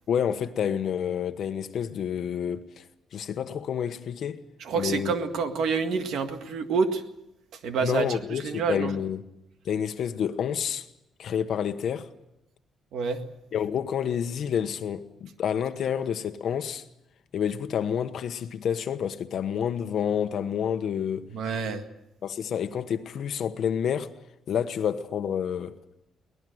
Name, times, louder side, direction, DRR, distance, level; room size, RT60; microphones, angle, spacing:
voice 1, 0.1-2.8 3.1-4.4 4.8-5.1 7.8-9.2 9.6-10.8 11.2-12.1 13.5-16.8 17.3-21.3 22.2-24.1 24.5-25.8, left 8 dB, 55° left, 1.2 m, -29 dB
voice 2, 4.6-7.0 7.5-8.9 12.9-13.2 21.3-21.8, right 5 dB, 70° right, 1.9 m, -28 dB
23.5 x 18.5 x 7.9 m
cardioid pair, 170°, 0 cm